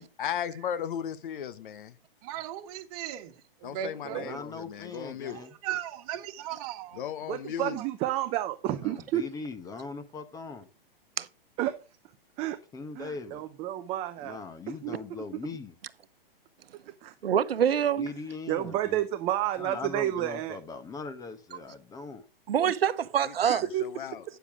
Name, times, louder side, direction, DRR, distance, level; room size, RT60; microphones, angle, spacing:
voice 1, 0.2-2.0 3.6-5.4 6.9-7.8 23.2-24.2, left 9 dB, 60° left, 1.0 m, -36 dB
voice 2, 2.2-3.3 3.6-4.4 5.3-7.0 7.8-7.9, right 11 dB, 40° right, 1.6 m, -37 dB
voice 3, 4.0-5.5 8.8-10.7 12.7-13.4 14.2-15.7 18.0-19.0 19.6-22.2, left 4 dB, 10° left, 1.0 m, -40 dB
voice 4, 7.3-9.2 11.6-11.8 12.4-12.6 13.0-14.4 14.7-15.0 17.0-17.1 18.5-20.6 22.6-22.7 23.7-23.8, right 13 dB, 20° right, 0.6 m, -30 dB
voice 5, 17.2-18.1 22.5-23.6, right 9 dB, 75° right, 0.9 m, -25 dB
9.1 x 7.1 x 4.7 m
hypercardioid pair, 130°, 30 cm